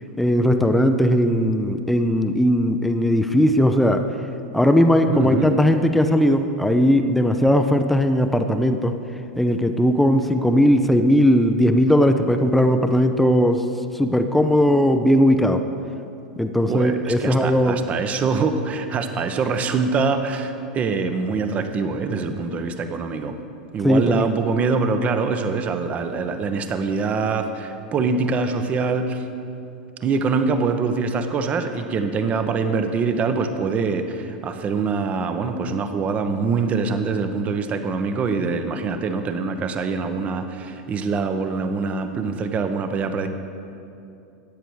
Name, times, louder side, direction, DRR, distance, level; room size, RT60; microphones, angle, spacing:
voice 1, 0.2-4.0 4.5-8.9 9.4-13.6 13.9-15.6 16.4-17.8 23.8-24.3, equal, 5° left, 7 dB, 0.6 m, -18 dB
voice 2, 5.1-5.6 16.7-23.4 23.7-29.2 30.0-43.3, right 4 dB, 30° right, 8 dB, 1.0 m, -24 dB
13.5 x 9.0 x 4.8 m, 2.6 s
hypercardioid pair, 90°, 4 cm